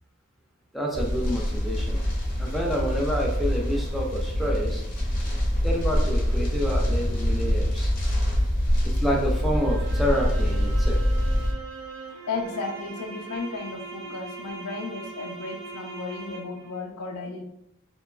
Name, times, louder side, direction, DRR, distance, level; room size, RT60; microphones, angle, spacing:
voice 1, 0.7-2.0 2.4-4.8 5.6-7.9 8.8-11.0, equal, ahead, -2 dB, 0.3 m, -28 dB
sound 1, 0.9-11.5, equal, 40° left, 0.6 m, -25 dB
sound 2, 9.5-16.8, right 4 dB, 60° right, 0.4 m, -40 dB
voice 2, 12.3-17.4, left 4 dB, 90° left, 3 dB, 0.5 m, -34 dB
2.8 x 2.2 x 2.3 m, 0.81 s
head